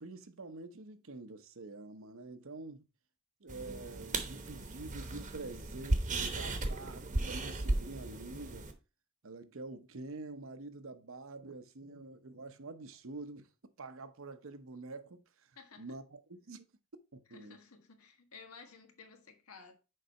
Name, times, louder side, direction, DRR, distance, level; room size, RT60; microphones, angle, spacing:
voice 1, 0.0-2.8 3.4-8.7 9.2-13.5 13.8-15.5 15.8-16.7 17.1-17.6, right 3 dB, 65° right, 0.8 m, -47 dB
sound 1, 3.5-8.7, right 2 dB, 35° right, 1.0 m, -36 dB
voice 2, 15.6-16.0 17.3-19.7, left 5 dB, 85° left, 1.5 m, -54 dB
6.6 x 4.8 x 4.2 m
head